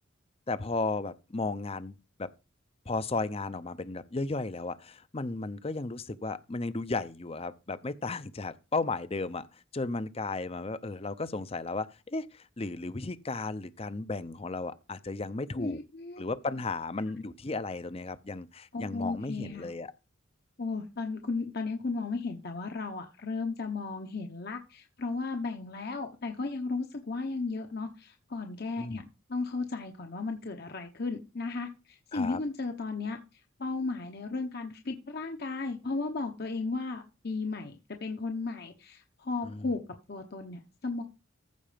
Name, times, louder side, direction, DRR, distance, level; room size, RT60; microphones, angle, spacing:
voice 1, 0.5-2.3 2.9-15.8 16.2-19.9 28.8-29.1 32.1-32.4 39.4-39.7, left 3 dB, 30° left, 0.6 m, -34 dB
voice 2, 15.5-16.2 18.7-19.7 20.6-29.0 29.3-33.2 33.6-37.8 38.0-39.8 40.1-41.0, left 3 dB, 50° left, 1.0 m, -35 dB
14.5 x 4.9 x 5.1 m
head